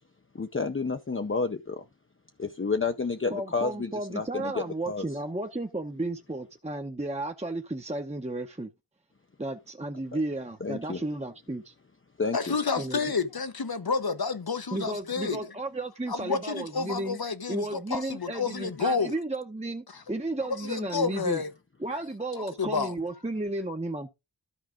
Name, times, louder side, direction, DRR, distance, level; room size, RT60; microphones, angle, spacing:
voice 1, 0.3-1.8 2.4-5.1 10.6-11.0 12.2-12.5, left 4 dB, 30° left, 0.7 m, -30 dB
voice 2, 3.3-8.7 9.4-11.7 12.8-13.1 14.7-17.2 17.5-21.4 21.8-24.1, right 2 dB, 15° right, 0.8 m, -33 dB
voice 3, 12.3-15.4 16.1-19.1 20.4-21.5 22.4-22.9, left 5 dB, 60° left, 0.9 m, -30 dB
13.0 x 4.7 x 3.7 m
wide cardioid pair, 45°, 42 cm